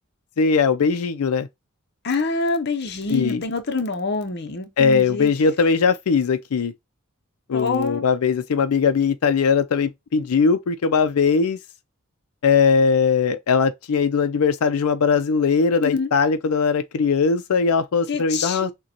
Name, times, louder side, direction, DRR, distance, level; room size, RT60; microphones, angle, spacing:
voice 1, 0.4-1.5 3.1-3.4 4.8-6.7 7.5-11.6 12.4-18.7, left 5 dB, 90° left, 0.4 m, -20 dB
voice 2, 2.0-5.3 7.5-8.1 15.8-16.1 18.1-18.7, left 3 dB, 50° left, 0.7 m, -26 dB
6.3 x 2.2 x 2.8 m
head